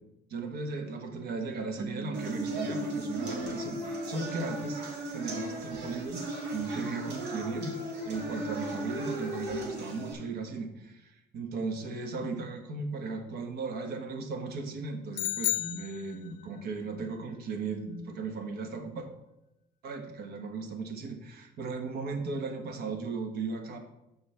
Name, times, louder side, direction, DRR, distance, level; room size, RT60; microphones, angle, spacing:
voice 1, 0.3-4.8 5.1-6.2 6.5-7.7 8.0-19.1 19.8-23.8, right 4 dB, 70° right, 5 dB, 1.3 m, -36 dB
sound 1, 1.8-5.1, right 6 dB, 20° right, 0.5 m, -43 dB
sound 2, 2.1-10.1, right 1 dB, 85° right, 1.9 m, -36 dB
sound 3, 15.1-16.6, left 15 dB, 55° left, 0.4 m, -32 dB
12.5 x 4.4 x 3.4 m, 0.92 s
cardioid pair, 110°, 17 cm